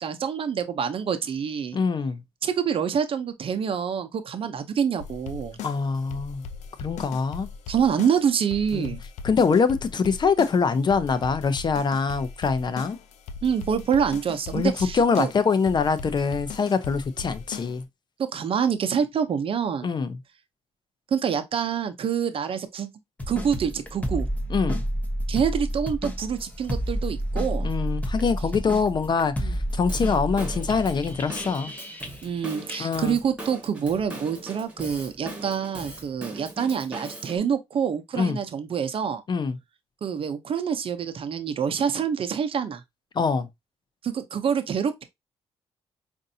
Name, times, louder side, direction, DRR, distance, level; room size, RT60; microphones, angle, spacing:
voice 1, 0.0-1.8 2.4-5.6 7.7-9.0 13.4-15.3 18.3-19.9 21.1-22.9 23.3-24.3 25.3-27.7 29.4-29.6 32.2-39.2 40.0-42.8 44.0-45.0, right 7 dB, 50° right, 0.7 m, -26 dB
voice 2, 1.7-2.2 5.6-6.4 6.8-7.5 8.7-8.9 9.2-13.0 14.5-17.8 19.8-20.2 24.5-24.8 27.6-31.7 32.8-33.2 38.1-38.4 39.3-39.6 43.1-43.5, left 5 dB, 40° left, 0.6 m, -24 dB
sound 1, 5.0-17.8, left 5 dB, 90° left, 0.5 m, -39 dB
sound 2, 23.2-32.4 32.7-32.8, equal, 15° left, 1.0 m, -30 dB
Drum kit / Drum, 29.9-37.4, right 1 dB, 10° right, 1.5 m, -40 dB
5.1 x 2.6 x 2.7 m
cardioid pair, 95°, 11 cm